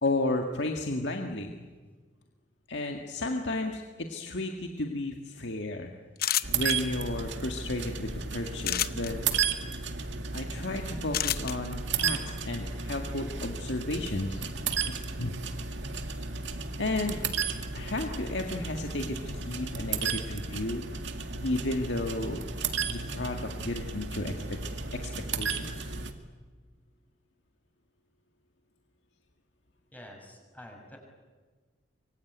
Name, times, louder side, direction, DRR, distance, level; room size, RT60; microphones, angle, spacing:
voice 1, 0.0-1.6 2.7-5.9 6.5-9.2 10.3-12.2 12.4-14.4 15.2-15.3 16.8-17.2 17.7-20.8 21.4-22.5 22.9-24.6 24.9-25.9, left 2 dB, 75° left, 3 dB, 1.9 m, -33 dB
sound 1, 6.2-6.7 8.6-9.1 11.1-11.5, left 12 dB, 55° left, 0.8 m, -28 dB
sound 2, 6.4-26.1, right 5 dB, 80° right, 2.2 m, -34 dB
voice 2, 29.9-31.0, left 1 dB, 10° left, 1 dB, 6.3 m, -48 dB
25.0 x 23.0 x 9.4 m, 1.4 s
head